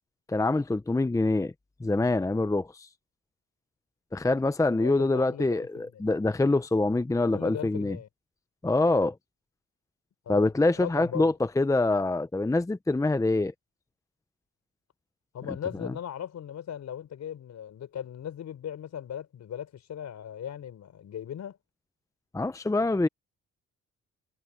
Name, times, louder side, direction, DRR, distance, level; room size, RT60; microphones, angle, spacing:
voice 1, 0.3-1.5 1.8-2.9 4.1-8.0 8.6-9.2 10.3-13.5 22.3-23.1, left 2 dB, 10° left, 0.8 m, -25 dB
voice 2, 4.7-6.1 7.2-8.1 10.3-10.5 10.8-11.3 15.3-21.6, left 9 dB, 65° left, 5.3 m, -38 dB
cardioid pair, 90°, 30 cm